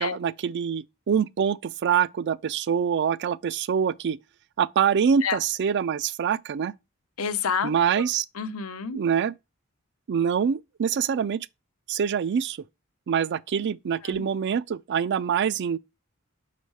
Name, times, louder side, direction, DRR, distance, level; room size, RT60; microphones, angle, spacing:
voice 1, 0.0-4.2 4.6-6.7 7.6-8.3 8.9-9.3 10.1-11.5 11.9-12.6 13.1-15.8, right 7 dB, 55° right, 0.4 m, -25 dB
voice 2, 7.2-8.0 8.4-9.0 14.1-14.2, left 6 dB, 80° left, 0.8 m, -29 dB
6.3 x 4.2 x 4.6 m
head